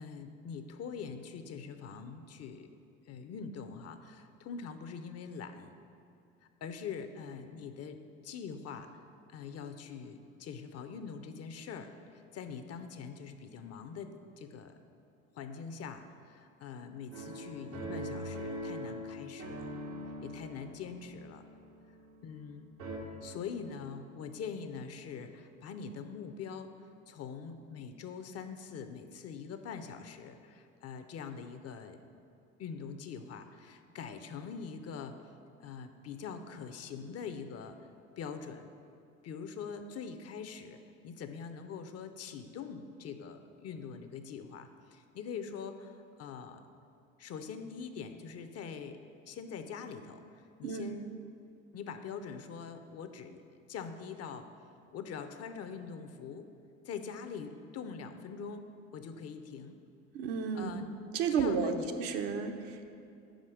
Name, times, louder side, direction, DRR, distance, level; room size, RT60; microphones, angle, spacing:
voice 1, 0.0-2.7 3.1-5.7 6.6-8.9 9.3-14.7 15.3-19.7 20.2-21.4 22.2-22.7 23.2-32.0 32.6-35.3 35.6-37.8 38.2-38.7 39.2-46.6 47.2-49.0 49.2-51.2 51.7-53.4 53.7-54.5 54.9-56.5 56.8-58.7 58.9-59.8 60.5-60.9 61.3-61.9, left 6 dB, 40° left, 8 dB, 0.6 m, -43 dB
sound 1, 17.1-22.5 22.8-23.0, right 1 dB, 85° right, 1.2 m, -42 dB
voice 2, 60.1-60.9 61.1-62.9, right 5 dB, 65° right, 5 dB, 0.8 m, -32 dB
5.3 x 5.0 x 6.3 m, 2.5 s
hypercardioid pair, 65°, 40 cm